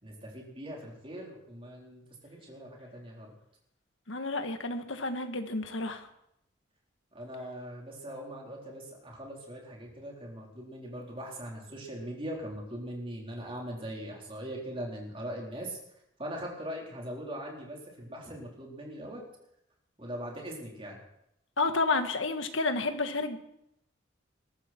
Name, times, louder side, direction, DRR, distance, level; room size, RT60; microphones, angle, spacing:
voice 1, 0.0-3.3 7.1-15.8 16.2-19.2 20.0-21.0, equal, 30° right, -2 dB, 4.1 m, -41 dB
voice 2, 4.1-6.1 21.6-23.4, left 3 dB, 85° left, 7 dB, 1.6 m, -30 dB
21.0 x 13.0 x 4.5 m, 0.79 s
head